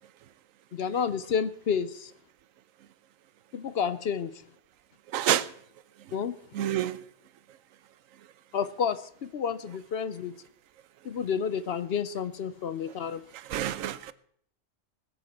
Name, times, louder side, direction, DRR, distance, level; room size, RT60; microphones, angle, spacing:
voice 1, 0.7-2.1 3.5-4.3 6.1-6.3 8.5-10.3 11.0-13.2, left 7 dB, 60° left, 0.8 m, -30 dB
voice 2, 5.1-5.4 6.6-7.0 13.5-14.1, right 12 dB, 90° right, 1.0 m, -27 dB
20.0 x 8.6 x 4.2 m
omnidirectional pair, 1.3 m